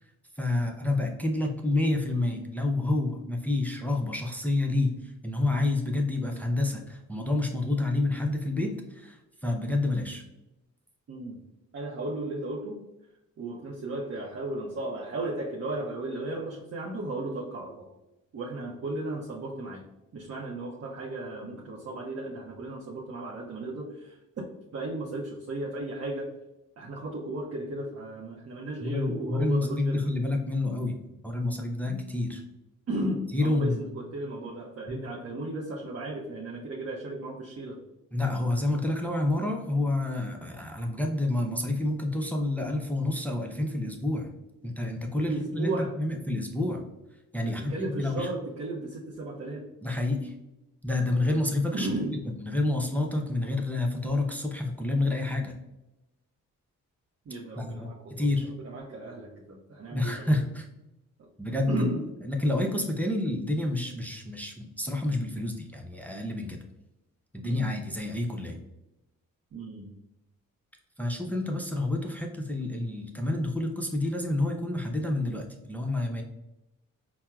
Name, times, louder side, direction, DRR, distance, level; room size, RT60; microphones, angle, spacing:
voice 1, 0.4-5.0 5.2-9.2 9.4-10.2 28.8-31.0 31.2-32.4 33.3-33.9 38.1-44.3 44.6-46.8 47.3-47.7 48.0-48.3 49.8-50.3 50.8-51.9 52.2-55.5 57.6-57.9 58.2-58.5 59.9-60.7 61.4-61.9 62.2-66.6 67.3-68.6 71.0-76.2, left 2 dB, 5° left, 2 dB, 0.5 m, -28 dB
voice 2, 11.1-11.4 11.7-12.9 13.4-17.9 18.3-19.8 20.1-24.4 24.7-26.3 26.8-30.1 31.8-32.1 32.9-37.8 45.2-45.9 47.4-49.7 51.7-52.2 57.3-60.3 61.2-61.3 61.7-62.1 67.4-67.7 69.5-70.0, right 2 dB, 45° right, -2 dB, 0.6 m, -35 dB
4.3 x 2.0 x 2.3 m, 0.94 s
supercardioid pair, 50°, 36 cm